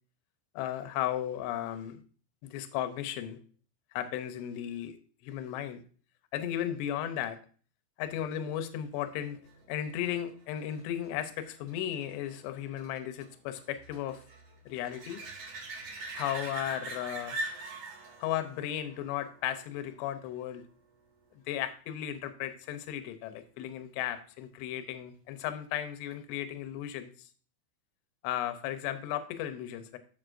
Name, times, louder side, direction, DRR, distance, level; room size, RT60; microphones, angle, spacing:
voice 1, 0.6-2.0 2.4-3.4 3.9-5.8 6.3-7.4 8.0-9.4 9.7-14.2 14.7-15.2 16.1-17.4 18.2-20.6 21.5-27.3 28.2-30.0, left 11 dB, 80° left, 9 dB, 2.8 m, -35 dB
sound 1, 9.2-20.5 26.1-26.2, right 2 dB, 60° right, 1.7 m, -44 dB
11.0 x 6.8 x 2.6 m, 0.42 s
omnidirectional pair, 5.3 m